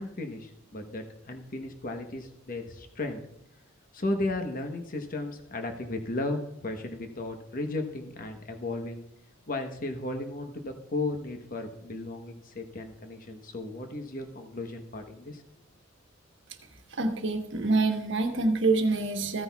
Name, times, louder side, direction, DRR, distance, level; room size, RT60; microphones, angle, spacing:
voice 1, 0.0-3.2 3.9-9.1 9.5-15.4, left 2 dB, 45° left, 5 dB, 1.0 m, -35 dB
voice 2, 16.9-19.4, right 3 dB, 60° right, 5 dB, 1.2 m, -26 dB
15.0 x 9.6 x 2.3 m, 0.83 s
head